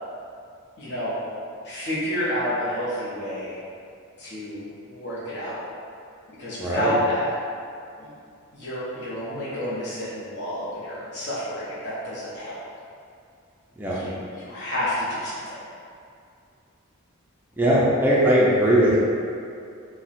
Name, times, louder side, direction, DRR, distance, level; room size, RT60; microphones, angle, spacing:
voice 1, 0.8-1.2 1.6-3.6 4.2-5.6 6.4-7.3 8.0-8.1 8.5-12.6 13.8-15.6, equal, 50° left, -10 dB, 0.6 m, -29 dB
voice 2, 6.6-7.0 13.8-14.1 17.6-19.0, right 1 dB, 10° right, -7 dB, 0.3 m, -19 dB
4.0 x 2.1 x 2.5 m, 2.4 s
head